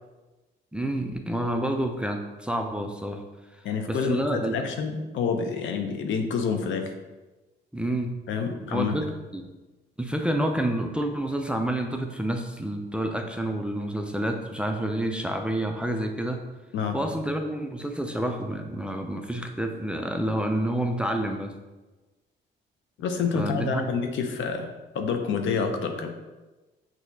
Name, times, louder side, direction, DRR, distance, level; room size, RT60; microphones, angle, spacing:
voice 1, 0.7-3.2 3.5-3.6 3.9-4.6 7.7-8.1 8.7-9.1 9.3-9.4 10.0-16.4 16.9-21.5 23.3-23.9, right 1 dB, 5° right, 3 dB, 0.4 m, -28 dB
voice 2, 3.6-6.9 8.3-9.0 16.7-17.0 23.0-26.1, left 5 dB, 75° left, 5 dB, 0.7 m, -28 dB
6.1 x 2.8 x 2.7 m, 1.2 s
cardioid pair, 90°, 20 cm